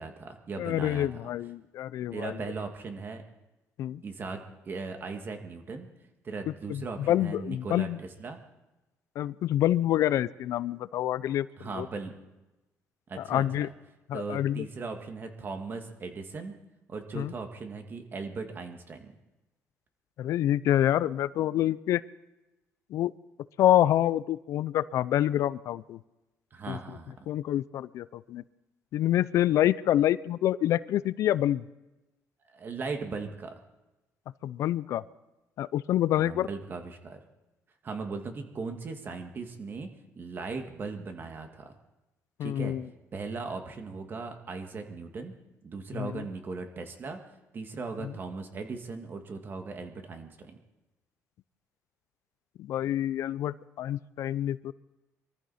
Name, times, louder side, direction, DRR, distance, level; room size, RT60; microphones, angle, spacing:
voice 1, 0.0-1.3 2.1-3.2 4.0-5.9 6.2-8.4 11.6-12.2 13.1-13.7 14.1-16.5 16.9-19.1 26.5-27.1 32.5-33.6 36.2-37.2 37.8-39.9 40.2-41.7 42.4-42.7 43.1-45.3 45.6-47.2 47.5-50.5, right 4 dB, 40° right, 5 dB, 1.9 m, -38 dB
voice 2, 0.6-2.4 3.8-4.0 6.7-8.0 9.2-11.5 11.8-11.9 13.2-13.7 14.1-14.6 17.1-17.3 20.2-22.0 22.9-23.1 23.6-26.0 26.7-26.8 27.3-28.4 28.9-31.6 34.4-35.0 35.6-36.5 42.4-42.8 46.0-46.2 48.0-48.1 52.6-54.7, left 12 dB, 70° left, 18 dB, 0.4 m, -27 dB
23.5 x 14.0 x 4.2 m, 1.0 s
cardioid pair, 115°, 5 cm